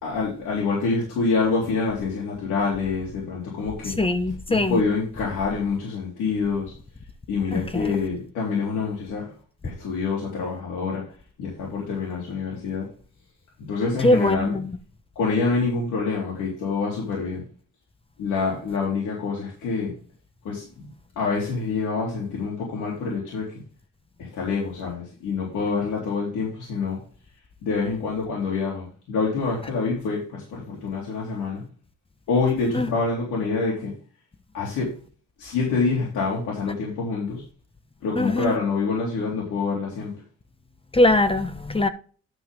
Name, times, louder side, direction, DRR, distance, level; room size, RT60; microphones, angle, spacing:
voice 1, 0.0-4.0 4.5-6.7 7.3-9.3 9.6-11.1 11.4-12.9 13.6-14.6 15.2-17.4 18.2-19.9 20.4-20.9 21.2-23.5 24.2-27.0 27.6-31.6 32.3-33.9 34.5-34.9 35.4-37.4 38.0-40.1, left 4 dB, 80° left, 3.9 m, -26 dB
voice 2, 4.0-4.8 7.5-8.0 14.0-14.7 32.7-32.9 38.1-38.6 40.9-41.9, left 2 dB, 20° left, 1.1 m, -21 dB
11.5 x 5.6 x 3.8 m
cardioid pair, 90°, 30 cm